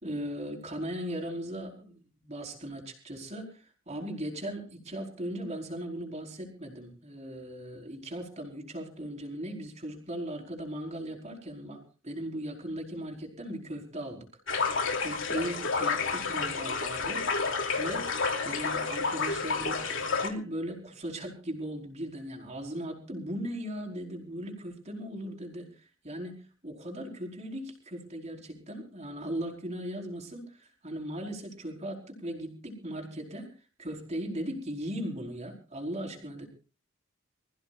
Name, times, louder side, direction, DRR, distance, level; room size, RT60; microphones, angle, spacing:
voice 1, 0.0-14.3 14.6-17.3 17.8-18.2 18.4-36.5, equal, 35° right, 1 dB, 4.7 m, -38 dB
sound 1, 14.5-20.3, left 4 dB, 75° left, 3.0 m, -30 dB
26.0 x 15.5 x 2.6 m, 0.36 s
head